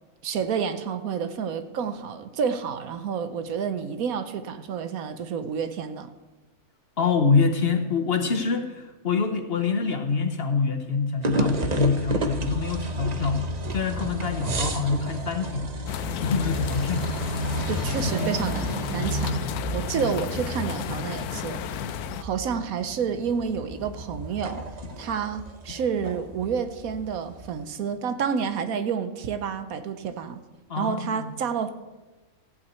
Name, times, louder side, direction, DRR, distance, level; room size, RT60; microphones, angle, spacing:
voice 1, 0.2-6.1 17.7-19.4 19.7-21.6 22.2-24.7 25.0-30.4 30.8-31.7, right 6 dB, 75° right, 1.2 m, -29 dB
voice 2, 7.0-15.7 16.2-17.1 30.7-31.3, left 5 dB, 50° left, 0.9 m, -25 dB
sound 1, 11.2-27.6, right 1 dB, 35° right, 0.7 m, -31 dB
sound 2, 15.9-22.2, left 11 dB, 90° left, 1.1 m, -33 dB
15.0 x 5.8 x 8.2 m
omnidirectional pair, 1.5 m